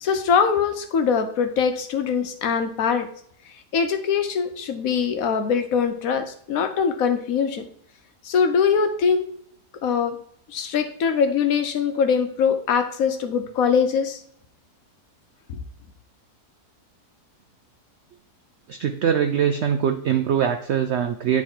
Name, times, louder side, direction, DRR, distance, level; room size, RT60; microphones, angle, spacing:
voice 1, 0.0-3.1 3.7-7.7 8.2-9.3 9.8-10.2 10.5-14.2, left 6 dB, 65° left, 7 dB, 1.1 m, -22 dB
voice 2, 18.7-21.4, right 8 dB, 80° right, 8 dB, 0.6 m, -22 dB
9.3 x 3.2 x 4.3 m, 0.65 s
omnidirectional pair, 1.7 m